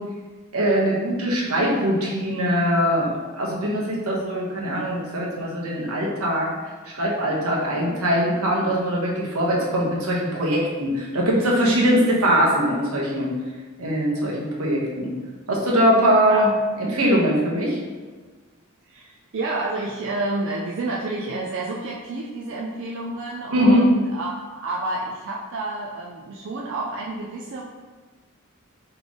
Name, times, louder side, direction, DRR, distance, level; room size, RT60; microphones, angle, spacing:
voice 1, 0.5-6.5 6.8-13.3 13.8-15.1 15.5-16.5 16.8-17.8 23.5-23.8, equal, 85° right, -3 dB, 1.1 m, -21 dB
voice 2, 18.9-27.6, right 2 dB, 60° right, -3 dB, 0.4 m, -29 dB
3.9 x 3.3 x 3.6 m, 1.3 s
head